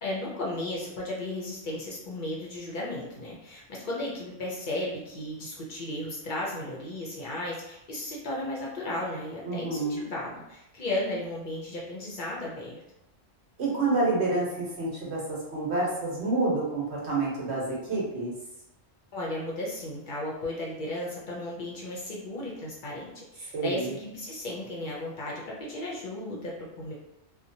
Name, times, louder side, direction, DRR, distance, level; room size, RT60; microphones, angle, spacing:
voice 1, 0.0-12.8 19.1-26.9, left 1 dB, 50° left, -4 dB, 0.6 m, -35 dB
voice 2, 9.4-10.0 13.6-18.3 23.5-23.9, right 2 dB, 60° right, -5 dB, 1.1 m, -28 dB
2.9 x 2.2 x 2.6 m, 0.90 s
omnidirectional pair, 1.3 m